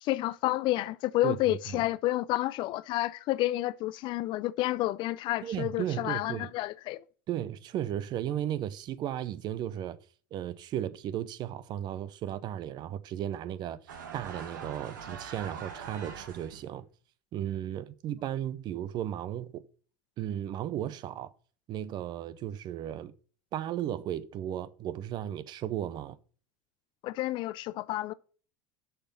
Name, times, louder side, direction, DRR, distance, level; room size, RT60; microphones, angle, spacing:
voice 1, 0.0-7.0 27.0-28.1, left 16 dB, 55° left, 0.5 m, -30 dB
voice 2, 1.2-1.8 5.4-6.5 7.3-10.0 10.3-13.8 14.1-16.9 17.3-19.6 20.2-21.3 21.7-23.1 23.5-26.2, right 11 dB, 45° right, 0.7 m, -35 dB
sound 1, 13.9-16.7, right 6 dB, 90° right, 1.6 m, -43 dB
6.8 x 5.9 x 7.3 m
supercardioid pair, 100°, 10 cm